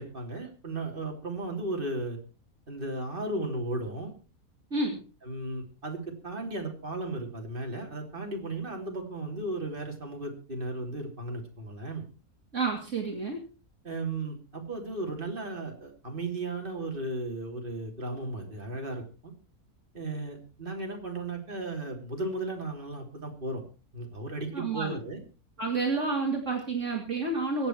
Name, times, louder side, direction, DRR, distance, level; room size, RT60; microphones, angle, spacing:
voice 1, 0.0-2.2 2.7-4.1 5.2-12.1 13.8-19.3 19.9-23.6 23.9-25.2, right 2 dB, 35° right, 2 dB, 3.4 m, -35 dB
voice 2, 12.5-13.4 24.5-25.0 25.6-27.7, right 3 dB, 55° right, 1 dB, 2.8 m, -29 dB
23.5 x 8.7 x 4.5 m, 0.34 s
omnidirectional pair, 1.6 m